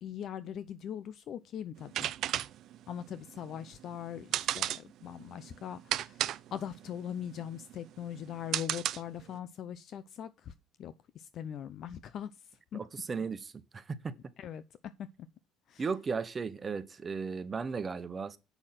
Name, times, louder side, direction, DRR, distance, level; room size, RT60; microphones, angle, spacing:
voice 1, 0.0-2.1 2.9-10.5 10.8-12.3 12.7-12.8 14.4-14.6 15.7-15.8, left 9 dB, 60° left, 0.6 m, -41 dB
sound 1, 1.8-9.4, right 12 dB, 65° right, 0.5 m, -35 dB
voice 2, 12.7-14.2 15.8-18.4, right 5 dB, 35° right, 1.1 m, -36 dB
8.1 x 6.4 x 5.9 m
hypercardioid pair, 70°, 0 cm